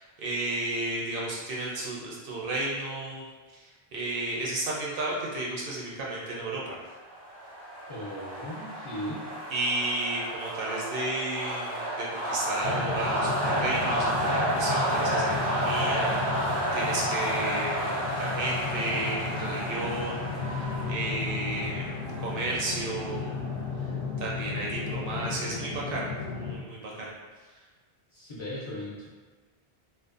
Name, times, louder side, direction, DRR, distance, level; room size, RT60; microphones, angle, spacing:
voice 1, 0.0-6.8 9.5-23.3 24.2-26.1 26.4-27.1, right 2 dB, 65° right, -4 dB, 0.7 m, -33 dB
sound 1, 7.0-23.6, right 1 dB, 35° right, 0.4 m, -31 dB
voice 2, 7.9-9.3 28.1-29.1, left 1 dB, 35° left, -9 dB, 0.6 m, -37 dB
sound 2, 12.6-26.6, left 5 dB, 70° left, 0.8 m, -34 dB
2.5 x 2.3 x 2.4 m, 1.3 s
omnidirectional pair, 1.1 m